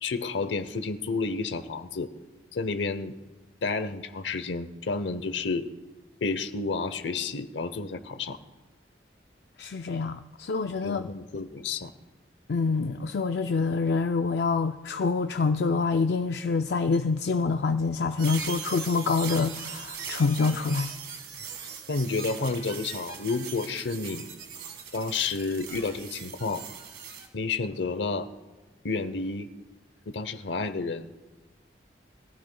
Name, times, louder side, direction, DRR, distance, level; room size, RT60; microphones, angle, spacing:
voice 1, 0.0-2.1 2.5-3.2 3.6-5.7 6.2-8.4 10.8-11.9 21.9-24.3 24.9-26.7 27.3-28.3 28.8-29.5 30.1-31.1, left 4 dB, 85° left, 12 dB, 0.8 m, -30 dB
voice 2, 9.6-11.1 12.5-20.9, left 4 dB, 65° left, 7 dB, 0.4 m, -26 dB
sound 1, 18.2-27.3, right 7 dB, 90° right, 1.9 m, -40 dB
21.5 x 16.0 x 2.3 m, 1.2 s
head